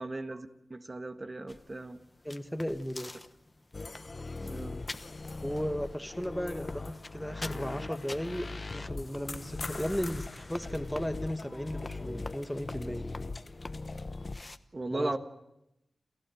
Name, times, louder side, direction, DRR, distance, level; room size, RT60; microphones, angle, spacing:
voice 1, 0.0-2.0 4.4-4.8 14.7-15.2, right 2 dB, 35° right, 7 dB, 1.5 m, -37 dB
sound 1, 1.5-14.6, left 2 dB, 25° left, 1.1 m, -49 dB
voice 2, 2.2-3.1 5.4-13.2 14.9-15.2, equal, 5° left, 8 dB, 1.2 m, -35 dB
sound 2, 3.7-14.4, left 3 dB, 40° left, 0.7 m, -40 dB
29.5 x 14.5 x 7.8 m, 0.88 s
wide cardioid pair, 70°, 0 cm